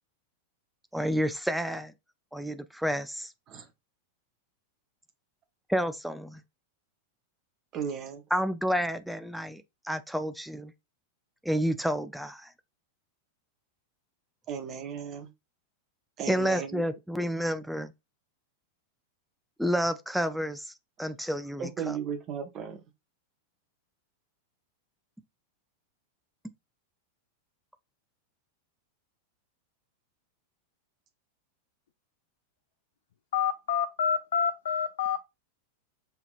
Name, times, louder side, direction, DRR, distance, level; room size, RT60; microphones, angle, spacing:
voice 1, 0.9-1.9 2.3-3.3 5.7-6.4 8.3-10.7 11.4-12.5 16.3-17.9 19.6-20.7 21.0-22.0, equal, ahead, 0.4 m, -30 dB
voice 2, 7.7-8.2 14.5-15.3 16.2-16.8 17.2-17.3 21.6-22.8, right 7 dB, 35° right, 0.9 m, -35 dB
voice 3, 33.3-35.2, left 7 dB, 60° left, 0.4 m, -28 dB
5.7 x 2.8 x 2.5 m
figure-of-eight pair, 90°, 0 cm